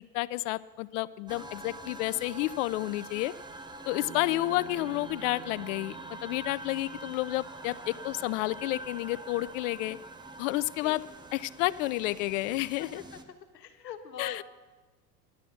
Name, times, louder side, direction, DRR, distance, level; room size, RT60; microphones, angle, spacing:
voice 1, 0.1-3.3 3.9-6.0 6.2-10.0 10.4-11.0 11.3-13.0 14.2-14.4, left 19 dB, 50° left, 18 dB, 0.5 m, -30 dB
sound 1, 1.3-13.2, right 2 dB, 10° right, 0.9 m, -45 dB
Bass guitar, 4.0-8.3, right 11 dB, 75° right, 1.1 m, -50 dB
voice 2, 12.8-13.2 13.5-14.4, left 7 dB, 80° left, 7 dB, 1.4 m, -43 dB
11.0 x 9.1 x 7.9 m, 1.3 s
hypercardioid pair, 85°, 49 cm